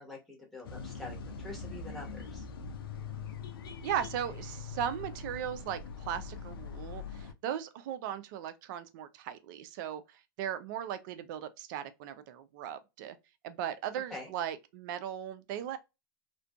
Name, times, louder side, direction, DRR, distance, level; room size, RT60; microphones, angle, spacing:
voice 1, 0.0-2.5 14.1-14.3, left 2 dB, ahead, 1.2 m, -46 dB
sound 1, 0.6-7.3, left 5 dB, 80° left, 0.4 m, -42 dB
voice 2, 3.8-13.2 13.4-15.8, right 9 dB, 60° right, 0.4 m, -37 dB
2.5 x 2.2 x 2.2 m
hypercardioid pair, 100°, 12 cm